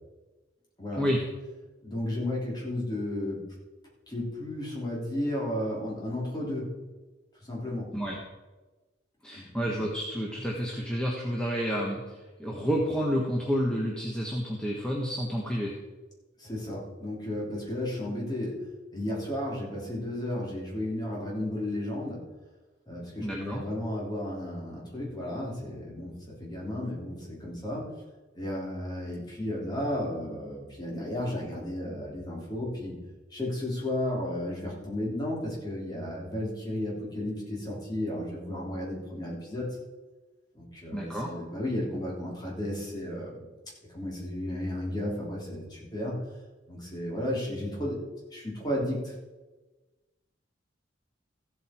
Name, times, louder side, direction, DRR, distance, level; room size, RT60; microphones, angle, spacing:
voice 1, 1.8-3.4 4.1-6.8 7.4-7.9 9.3-9.5 16.4-18.6 18.9-22.2 22.9-27.9 28.3-32.9 33.3-39.8 40.5-43.5 43.9-46.2 46.7-48.0 48.3-49.1, left 1 dB, 20° left, -4 dB, 3.4 m, -33 dB
voice 2, 9.2-15.7 23.2-23.6 40.9-41.3, equal, 5° left, -3 dB, 1.4 m, -30 dB
15.0 x 8.1 x 4.5 m, 1.2 s
head